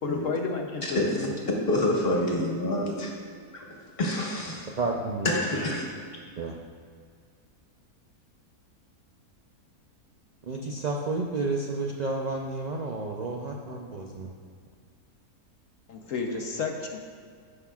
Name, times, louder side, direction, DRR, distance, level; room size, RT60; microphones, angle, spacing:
voice 1, 0.0-1.6 15.9-17.0, left 4 dB, 65° left, 2 dB, 1.1 m, -32 dB
voice 2, 0.8-1.3 1.7-3.1 3.5-3.6 4.0-4.7 5.2-5.8, left 1 dB, 40° left, -2 dB, 1.4 m, -27 dB
voice 3, 4.8-5.4 6.4-6.6 10.5-14.3, right 3 dB, 60° right, -1 dB, 0.4 m, -31 dB
16.5 x 5.8 x 2.4 m, 2.1 s
omnidirectional pair, 1.6 m